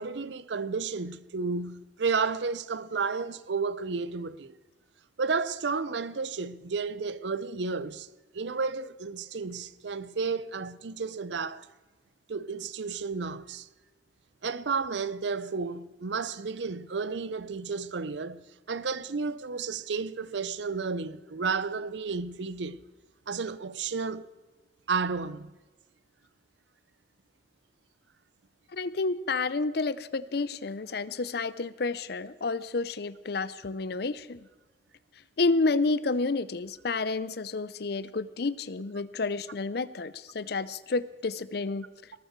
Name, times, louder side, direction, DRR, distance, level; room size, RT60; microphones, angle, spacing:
voice 1, 0.0-4.6 5.2-8.1 8.3-11.7 12.3-13.7 14.4-22.8 23.3-24.3 24.9-25.5, right 4 dB, 75° right, 0.6 m, -32 dB
voice 2, 28.7-34.5 35.4-41.9, left 3 dB, 60° left, 0.6 m, -30 dB
19.0 x 13.0 x 4.6 m
head